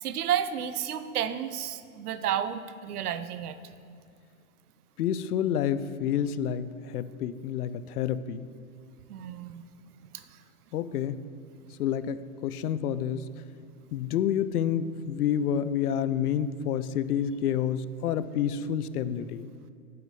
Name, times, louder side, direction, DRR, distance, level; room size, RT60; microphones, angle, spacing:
voice 1, 0.0-3.6 9.1-9.6 10.1-10.4, right 9 dB, 85° right, 12 dB, 0.7 m, -31 dB
voice 2, 5.0-8.5 10.7-11.2 11.8-13.3 13.9-19.5, left 9 dB, 90° left, 15 dB, 0.5 m, -29 dB
7.8 x 4.8 x 5.4 m, 2.4 s
hypercardioid pair, 150°, 44 cm